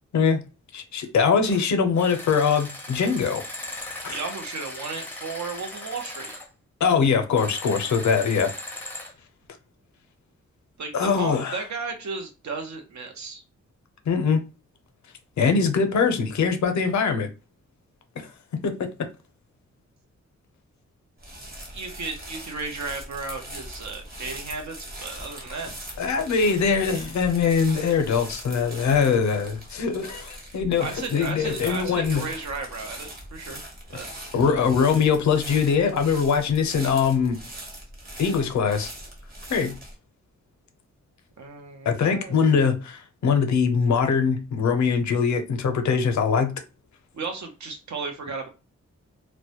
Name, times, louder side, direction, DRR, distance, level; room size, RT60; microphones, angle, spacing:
voice 1, 0.7-3.4 4.0-4.1 6.8-8.5 10.9-11.6 14.1-14.4 15.4-17.3 18.2-18.3 18.6-18.9 26.0-32.2 34.3-37.4 38.2-38.9 39.5-39.8 41.9-46.5, left 6 dB, 75° left, 0.5 m, -22 dB
sound 1, 1.4-1.7 2.0-6.5 7.3-9.1, left 1 dB, 5° left, 0.5 m, -38 dB
voice 2, 4.1-6.3 10.8-13.4 21.7-25.7 30.8-33.6 33.9-34.1 34.4-34.6 41.4-42.6 47.1-48.5, right 4 dB, 70° right, 0.7 m, -34 dB
sound 2, 21.2-39.9, right 1 dB, 30° right, 0.9 m, -41 dB
2.1 x 2.1 x 2.7 m
wide cardioid pair, 125°, 29 cm